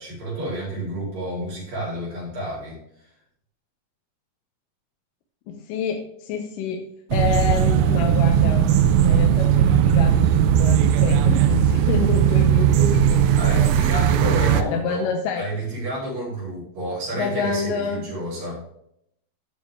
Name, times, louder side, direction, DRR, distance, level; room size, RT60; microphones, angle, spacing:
voice 1, 0.0-2.8 13.3-18.6, right 1 dB, 70° right, -8 dB, 5.9 m, -30 dB
voice 2, 5.5-8.6 9.0-13.7 14.2-15.5 17.1-18.0, left 5 dB, 75° left, 3 dB, 2.3 m, -27 dB
sound 1, 7.1-14.6, right 9 dB, 90° right, 2.6 m, -18 dB
14.5 x 5.1 x 3.5 m, 0.73 s
omnidirectional pair, 4.2 m